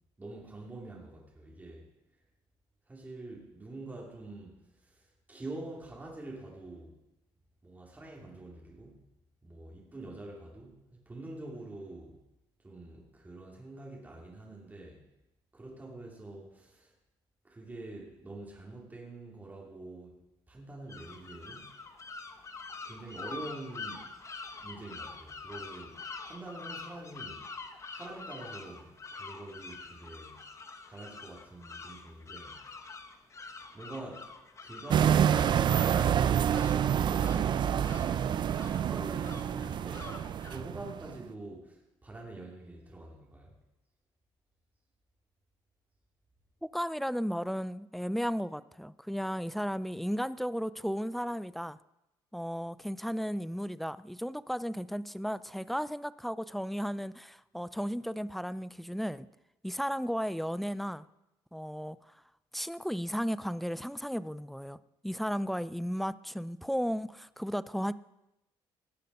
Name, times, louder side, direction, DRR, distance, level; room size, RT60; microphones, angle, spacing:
voice 1, 0.2-1.8 2.9-6.9 7.6-9.1 9.4-12.2 12.6-15.0 15.5-16.9 17.4-20.2 20.5-21.8 22.8-24.1 24.6-26.0 26.2-27.4 27.9-30.4 30.9-32.6 33.7-34.3 34.6-36.5 36.8-38.5 38.8-40.1 40.5-43.5, right 2 dB, 15° right, -3 dB, 2.8 m, -46 dB
sound 1, 20.9-40.6, left 4 dB, 30° left, 1.2 m, -46 dB
sound 2, 34.9-41.2, right 9 dB, 50° right, 0.5 m, -27 dB
voice 2, 46.7-51.8 52.3-59.3 59.6-61.1 61.5-62.0 62.5-64.8 65.0-67.9, equal, ahead, 17 dB, 0.4 m, -34 dB
18.0 x 6.7 x 5.5 m, 0.91 s
cardioid pair, 90°, 10 cm